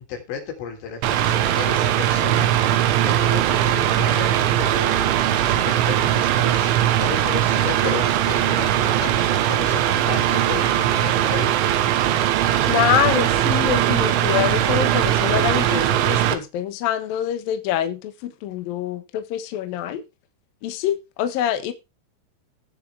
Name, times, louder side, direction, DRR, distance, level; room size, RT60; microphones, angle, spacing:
voice 1, 0.1-11.7, left 6 dB, 85° left, 5.9 m, -34 dB
Mechanical fan, 1.0-16.3, right 12 dB, 85° right, 3.6 m, -20 dB
voice 2, 12.6-20.0 20.6-21.7, left 10 dB, 65° left, 2.4 m, -25 dB
17.5 x 7.3 x 3.3 m
omnidirectional pair, 5.5 m